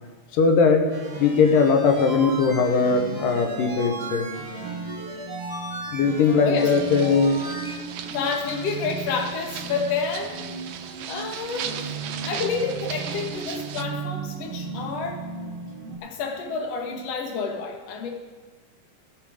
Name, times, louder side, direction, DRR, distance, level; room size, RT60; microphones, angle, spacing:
voice 1, 0.3-0.9 1.2-4.3 5.9-7.4, left 5 dB, 90° left, 4 dB, 2.6 m, -20 dB
sound 1, 0.7-16.0, right 4 dB, 50° right, 1.9 m, -37 dB
sound 2, 0.9-7.7, right 2 dB, 30° right, 2.6 m, -36 dB
voice 2, 6.4-6.7 8.1-11.8 12.2-15.3 16.0-18.1, left 5 dB, 55° left, 2 dB, 2.2 m, -29 dB
sound 3, 6.6-13.8, right 9 dB, 80° right, 1.5 m, -37 dB
17.5 x 6.8 x 4.9 m, 1.4 s
omnidirectional pair, 3.8 m